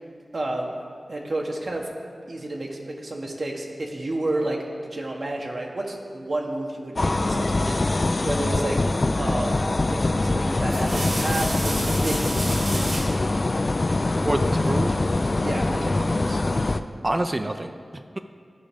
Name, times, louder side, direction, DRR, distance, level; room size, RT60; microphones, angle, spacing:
voice 1, 0.3-0.7 1.1-1.9 2.3-8.8 9.2-9.6 9.9-13.2 15.4-16.4, right 2 dB, 60° right, 0 dB, 1.0 m, -31 dB
sound 1, 7.0-16.8, left 2 dB, 50° left, 0.3 m, -23 dB
sound 2, 9.5-9.8 10.5-13.2 14.6-15.3, right 1 dB, 80° right, 1.9 m, -32 dB
voice 2, 14.2-15.2 17.0-18.2, right 1 dB, 30° right, 6 dB, 0.4 m, -28 dB
12.5 x 4.9 x 3.5 m, 2.1 s
cardioid pair, 45°, 0 cm